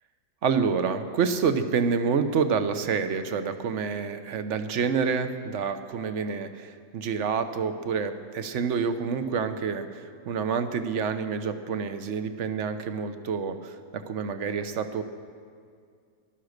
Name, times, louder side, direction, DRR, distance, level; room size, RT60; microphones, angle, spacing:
voice 1, 0.4-15.0, right 6 dB, 55° right, 10 dB, 1.0 m, -28 dB
15.5 x 11.5 x 6.5 m, 2.1 s
omnidirectional pair, 1.7 m